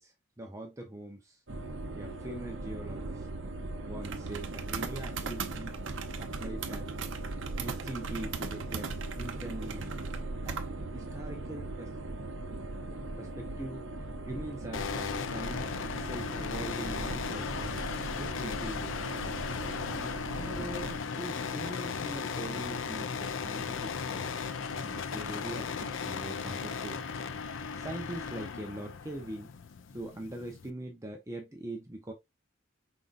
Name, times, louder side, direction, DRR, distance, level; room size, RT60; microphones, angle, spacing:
voice 1, 0.0-1.4 1.9-3.3 3.9-5.8 6.1-7.0 7.5-8.9 9.2-10.0 10.2-10.6 10.9-11.9 13.2-13.9 14.3-18.9 19.9-27.0 27.7-29.5 29.9-32.1, right 1 dB, 15° right, 0.7 m, -42 dB
sound 1, 1.5-21.0, right 3 dB, 65° right, 0.7 m, -38 dB
sound 2, 14.7-30.7, left 5 dB, 70° left, 0.5 m, -36 dB
5.2 x 3.7 x 2.4 m
head